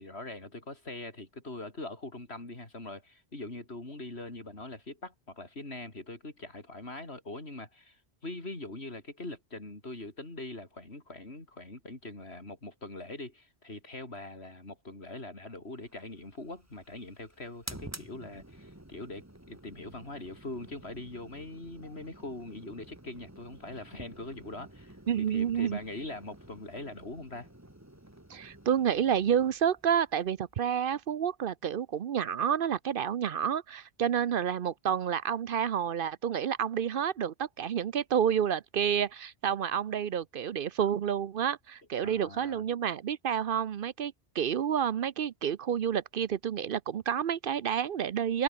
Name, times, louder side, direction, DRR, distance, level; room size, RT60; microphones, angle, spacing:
voice 1, 0.0-25.0 25.3-27.5 42.0-42.6, left 2 dB, 80° left, 4.8 m, -42 dB
sound 1, 15.8-31.1, right 1 dB, 15° right, 2.6 m, -51 dB
voice 2, 25.1-25.8 28.3-48.4, right 8 dB, 60° right, 0.8 m, -29 dB
omnidirectional pair, 1.1 m